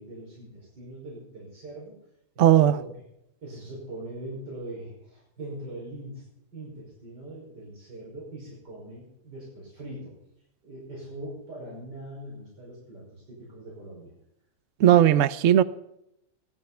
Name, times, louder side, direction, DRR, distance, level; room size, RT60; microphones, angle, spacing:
voice 1, 0.0-2.0 2.3-3.0 3.4-6.3 6.5-10.1 10.6-14.1, right 1 dB, 75° right, -5 dB, 6.2 m, -41 dB
voice 2, 2.4-2.7 14.8-15.6, right 11 dB, 55° right, 14 dB, 1.0 m, -17 dB
17.5 x 14.0 x 5.6 m, 0.81 s
omnidirectional pair, 1.8 m